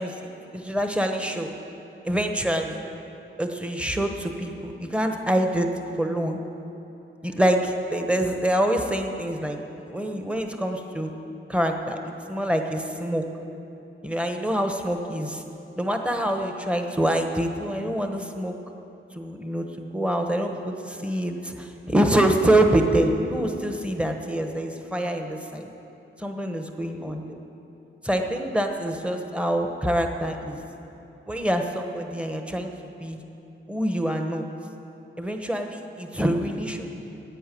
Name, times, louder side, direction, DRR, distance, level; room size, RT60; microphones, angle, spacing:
voice 1, 0.0-1.5 2.0-2.8 3.4-5.7 6.0-6.4 7.2-11.1 11.5-13.2 14.0-15.4 15.8-18.6 19.1-25.7 26.2-27.4 28.0-30.6 31.3-32.7 33.0-33.2 33.7-34.4 35.2-36.9, right 1 dB, 5° right, 4 dB, 1.0 m, -25 dB
11.0 x 8.9 x 9.1 m, 2.9 s
wide cardioid pair, 130°, 21 cm